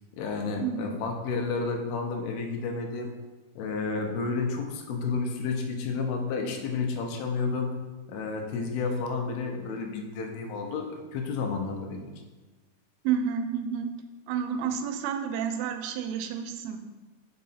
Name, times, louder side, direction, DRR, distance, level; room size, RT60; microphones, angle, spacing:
voice 1, 0.1-3.1 3.6-7.7 8.1-12.1, left 4 dB, 90° left, 3 dB, 2.7 m, -31 dB
voice 2, 13.0-13.9 14.3-16.8, right 7 dB, 85° right, 7 dB, 2.5 m, -30 dB
5.3 x 4.6 x 4.1 m, 1.2 s
omnidirectional pair, 4.4 m